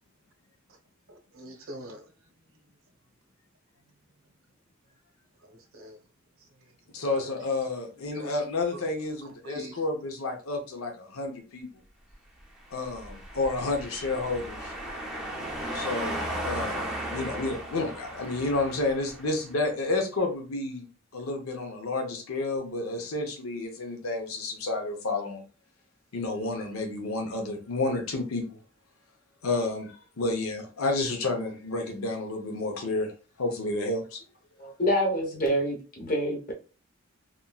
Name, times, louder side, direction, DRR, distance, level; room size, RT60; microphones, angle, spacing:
voice 1, 1.1-2.1 5.4-6.0 6.6-6.7 7.1-7.2 8.1-8.3 8.7-8.8 9.2-9.8, equal, 80° right, 0.7 m, -43 dB
voice 2, 6.9-11.7 12.7-14.7 15.7-20.9 21.1-25.4 26.1-28.6 29.4-33.1 33.4-34.2, left 2 dB, 90° left, 0.7 m, -30 dB
sound 1, 12.7-19.5, right 1 dB, 5° right, 0.5 m, -36 dB
voice 3, 34.6-36.5, equal, 40° left, 0.9 m, -27 dB
2.9 x 2.5 x 2.2 m
head